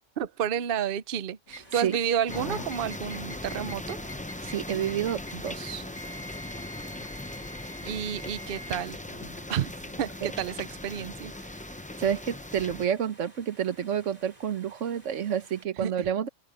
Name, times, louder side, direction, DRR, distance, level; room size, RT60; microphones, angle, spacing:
voice 1, 0.2-4.0 7.8-9.0 9.5-9.7 10.0-11.3 15.8-16.1, right 9 dB, 55° right, 0.8 m, -30 dB
sound 1, 1.5-10.8, left 1 dB, 70° left, 8.2 m, -45 dB
sound 2, 1.5-15.7, right 1 dB, 35° right, 4.4 m, -55 dB
sound 3, 2.3-12.9, left 1 dB, 10° left, 0.4 m, -39 dB
voice 2, 4.4-5.8 12.0-16.3, right 9 dB, 80° right, 1.4 m, -29 dB
open air
omnidirectional pair, 1.3 m